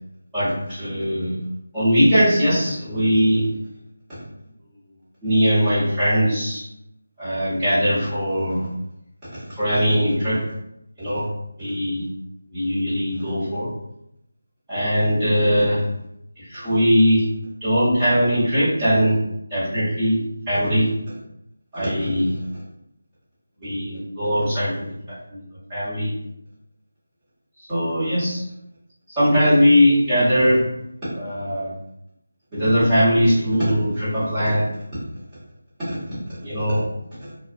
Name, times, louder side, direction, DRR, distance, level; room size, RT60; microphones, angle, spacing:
voice 1, 0.3-1.4 1.7-3.5 5.2-6.6 7.2-8.7 9.6-10.4 11.0-11.2 11.6-12.0 12.5-13.7 14.7-15.8 16.5-17.2 17.6-19.2 19.5-20.2 20.5-20.9 21.7-22.3 23.6-24.9 25.3-25.4 25.7-26.1 27.7-28.4 29.2-30.6 31.1-31.7 32.5-34.7 36.4-36.8, equal, 10° right, -16 dB, 1.3 m, -20 dB
2.4 x 2.3 x 2.6 m, 0.79 s
figure-of-eight pair, 170°, 0 cm